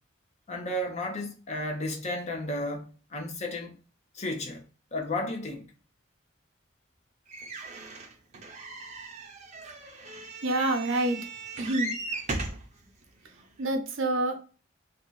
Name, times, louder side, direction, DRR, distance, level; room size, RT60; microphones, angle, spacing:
voice 1, 0.5-3.7 4.1-4.6 4.9-5.7, left 1 dB, 35° left, 0.7 m, -33 dB
sound 1, 7.3-12.7 13.4-13.5 13.7-13.8, right 3 dB, 35° right, 0.6 m, -37 dB
voice 2, 10.4-11.2 11.6-11.9 13.6-14.4, right 1 dB, 85° right, 0.7 m, -27 dB
2.7 x 2.3 x 3.8 m
head